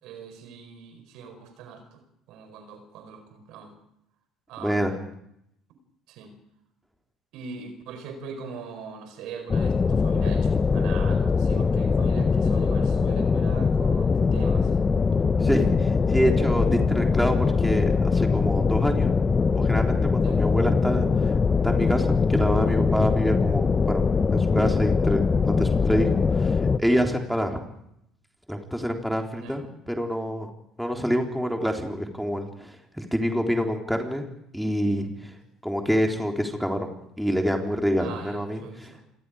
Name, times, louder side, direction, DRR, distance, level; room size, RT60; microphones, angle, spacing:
voice 1, 0.0-3.7 4.5-5.0 6.1-6.3 7.3-14.8 20.2-20.4 29.3-29.6 38.0-39.0, right 5 dB, 65° right, 7 dB, 4.6 m, -41 dB
voice 2, 4.6-4.9 15.4-19.1 19.5-21.4 21.6-24.0 24.3-27.6 28.5-30.5 30.8-34.3 34.5-35.3 35.6-36.9 37.2-38.9, equal, ahead, 2 dB, 3.7 m, -26 dB
sound 1, 9.5-26.8, left 5 dB, 30° left, 1.0 m, -22 dB
28.0 x 22.0 x 5.0 m, 0.79 s
hypercardioid pair, 60°, 0 cm